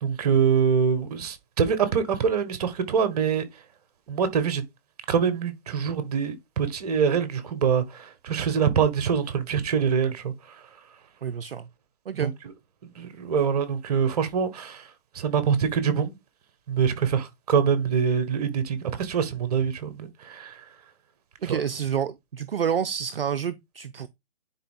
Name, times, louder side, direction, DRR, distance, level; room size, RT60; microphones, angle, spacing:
voice 1, 0.0-3.4 4.1-4.6 5.1-10.3 12.2-12.3 13.0-14.8 15.1-16.2 16.7-20.5 21.5-21.6, right 6 dB, 35° right, 1.5 m, -24 dB
voice 2, 11.2-11.7 12.1-12.3 21.4-24.1, right 8 dB, 55° right, 0.7 m, -28 dB
10.0 x 4.6 x 3.7 m
figure-of-eight pair, 140°, 35 cm